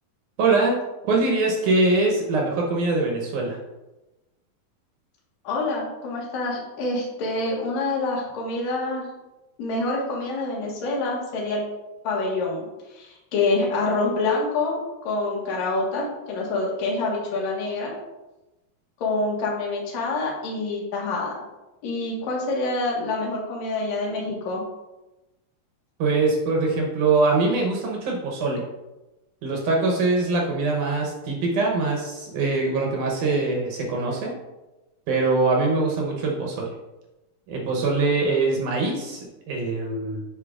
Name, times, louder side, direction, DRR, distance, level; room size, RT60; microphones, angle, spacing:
voice 1, 0.4-0.8 1.0-3.6 26.0-28.6 29.4-34.3 35.1-36.7 37.5-40.2, right 3 dB, 70° right, -1 dB, 2.1 m, -23 dB
voice 2, 5.4-9.1 9.6-11.6 12.0-12.7 12.9-14.8 15.0-17.9 19.0-21.4 21.8-24.6, left 3 dB, 60° left, -3 dB, 2.6 m, -26 dB
8.3 x 5.6 x 2.4 m, 1.0 s
omnidirectional pair, 4.1 m